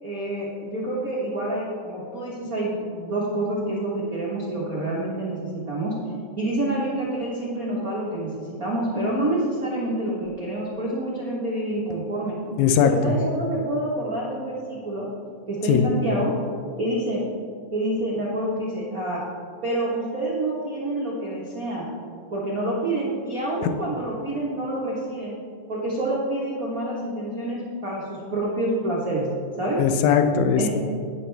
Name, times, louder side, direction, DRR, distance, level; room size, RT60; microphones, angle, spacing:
voice 1, 0.0-6.0 6.4-12.4 12.8-15.1 15.5-16.3 16.8-17.2 17.7-19.2 19.6-21.9 22.3-25.3 25.7-29.3 29.6-29.8 30.6-30.7, right 1 dB, 70° right, -6 dB, 0.8 m, -27 dB
voice 2, 12.6-13.1 15.7-15.9 29.8-30.7, left 7 dB, 75° left, 8 dB, 1.7 m, -19 dB
11.5 x 9.9 x 3.4 m, 2.3 s
omnidirectional pair, 3.9 m